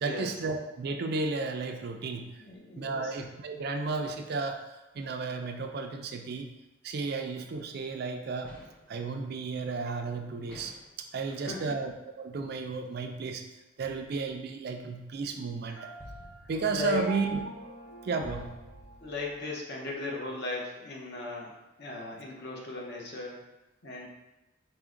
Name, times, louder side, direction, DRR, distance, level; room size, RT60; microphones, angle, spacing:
voice 1, 0.0-2.4 2.8-6.5 6.8-8.6 8.9-10.7 11.1-13.4 13.8-15.9 16.5-17.4 18.0-18.5, right 4 dB, 50° right, 5 dB, 0.3 m, -33 dB
voice 2, 2.4-3.1 11.4-11.7 15.7-15.8 16.7-17.0 19.0-23.4 23.8-24.1, left 3 dB, 55° left, -2 dB, 0.8 m, -37 dB
sound 1, 8.4-9.0 10.5-11.0 13.8-14.4 16.0-19.4, equal, 5° left, 0.6 m, -51 dB
Piano, 15.8-19.6, right 2 dB, 85° left, 1.3 m, -46 dB
4.6 x 2.1 x 3.7 m, 1.0 s
head